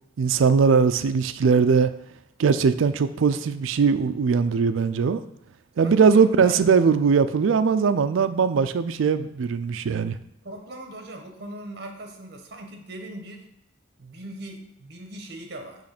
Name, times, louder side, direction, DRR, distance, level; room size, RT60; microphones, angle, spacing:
voice 1, 0.2-1.9 2.4-5.2 5.8-10.2, right 5 dB, 80° right, 12 dB, 0.4 m, -20 dB
voice 2, 5.8-6.6 10.4-13.5 14.0-15.8, right 1 dB, 55° right, 3 dB, 1.0 m, -39 dB
6.4 x 3.1 x 5.9 m, 0.77 s
head